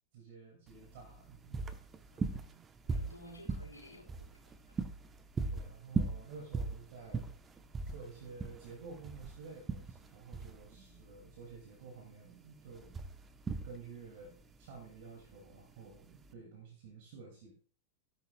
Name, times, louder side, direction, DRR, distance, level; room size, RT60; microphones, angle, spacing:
voice 1, 0.1-1.6 5.5-7.3 7.8-13.0 13.6-17.5, right 4 dB, 50° right, 1 dB, 2.7 m, -51 dB
sound 1, 0.7-16.3, right 4 dB, 20° right, 1.0 m, -40 dB
voice 2, 2.1-2.6 2.9-4.8 10.7-11.0, equal, 80° left, -1 dB, 4.4 m, -55 dB
16.0 x 10.0 x 2.4 m, 0.42 s
figure-of-eight pair, 90°, 0 cm